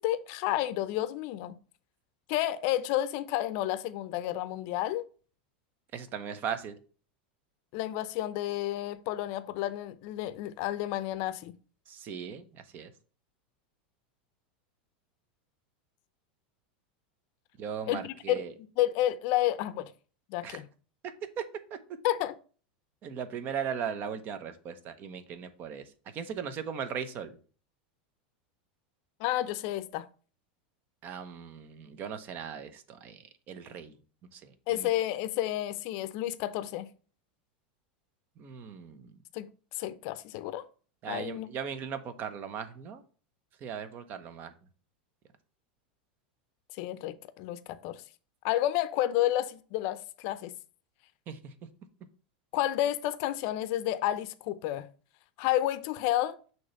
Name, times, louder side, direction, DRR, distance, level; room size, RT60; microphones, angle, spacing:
voice 1, 0.0-1.5 2.3-5.1 7.7-11.5 17.9-19.9 20.3-20.7 22.0-22.4 29.2-30.1 34.7-36.9 39.3-39.5 39.8-40.7 41.1-41.5 46.8-48.0 48.4-50.5 52.5-54.9 55.4-56.4, left 13 dB, 55° left, 0.5 m, -30 dB
voice 2, 5.9-6.7 11.9-12.9 17.6-18.5 20.4-20.6 23.0-25.8 26.1-27.4 31.0-33.9 34.3-34.9 38.4-39.1 41.0-43.0 43.6-44.5 51.3-51.4, right 7 dB, 40° right, 0.9 m, -38 dB
6.3 x 3.0 x 5.6 m
hypercardioid pair, 110°, 5 cm